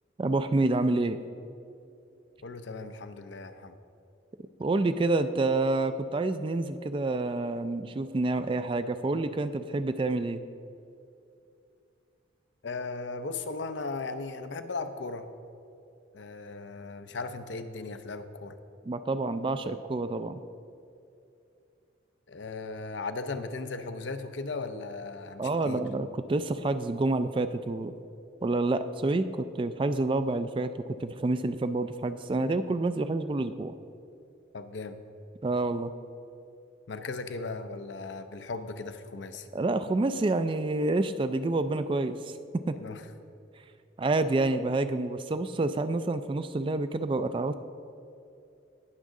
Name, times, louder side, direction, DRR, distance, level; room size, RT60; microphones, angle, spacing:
voice 1, 0.2-1.2 4.6-10.4 18.9-20.4 25.4-27.9 28.4-33.7 35.4-35.9 39.5-42.8 44.0-47.5, right 2 dB, 25° right, 11 dB, 0.3 m, -28 dB
voice 2, 2.4-3.8 12.6-15.3 16.1-18.6 22.3-25.8 34.5-35.0 36.9-39.5 42.8-43.0, left 3 dB, 70° left, 9 dB, 0.6 m, -37 dB
18.5 x 6.3 x 3.7 m, 2.6 s
head